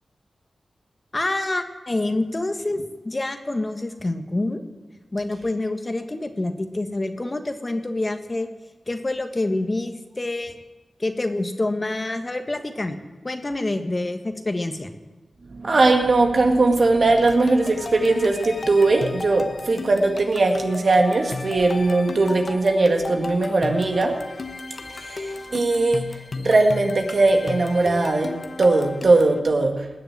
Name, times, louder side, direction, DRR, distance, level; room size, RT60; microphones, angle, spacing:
voice 1, 1.1-4.6 5.1-8.5 8.9-10.6 11.0-13.0 13.2-14.9, left 2 dB, 35° left, 7 dB, 1.4 m, -27 dB
voice 2, 15.5-24.2 25.0-26.1 26.4-29.8, right 2 dB, 60° right, 3 dB, 1.8 m, -19 dB
sound 1, 17.1-29.4, left 3 dB, 55° left, 1.0 m, -34 dB
19.5 x 6.9 x 8.9 m, 1.2 s
cardioid pair, 65°, 0 cm